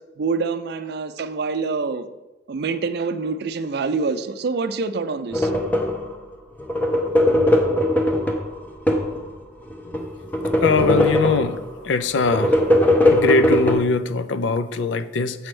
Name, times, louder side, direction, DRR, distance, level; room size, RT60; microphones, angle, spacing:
voice 1, 0.2-2.1 2.5-5.5, right 4 dB, 60° right, 11 dB, 0.4 m, -26 dB
sound 1, 5.3-6.1 6.6-9.2 9.7-11.7 12.2-13.8, left 1 dB, 10° left, 0.6 m, -19 dB
voice 2, 10.6-11.6 11.8-12.6 13.1-15.5, left 3 dB, 75° left, 12 dB, 0.4 m, -21 dB
7.1 x 3.2 x 6.0 m, 1.1 s
head